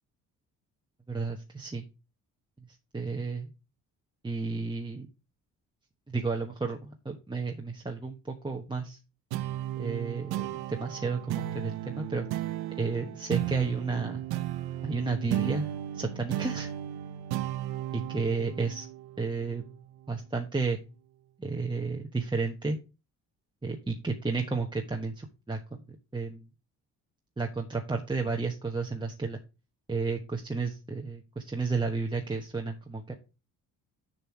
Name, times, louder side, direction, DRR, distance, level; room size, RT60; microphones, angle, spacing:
voice 1, 1.1-1.8 2.9-3.5 4.2-5.1 6.1-9.0 9.8-12.3 12.8-14.2 14.8-15.7 15.9-16.7 17.9-18.9 19.2-19.6 20.1-20.8 21.4-22.8 23.6-25.6 26.1-26.4 27.4-29.4 29.9-33.1, right 4 dB, 10° right, 1 dB, 1.1 m, -32 dB
sound 1, 9.3-20.1, right 13 dB, 80° right, 0.8 m, -35 dB
6.9 x 5.7 x 4.5 m, 0.30 s
supercardioid pair, 75°, 37 cm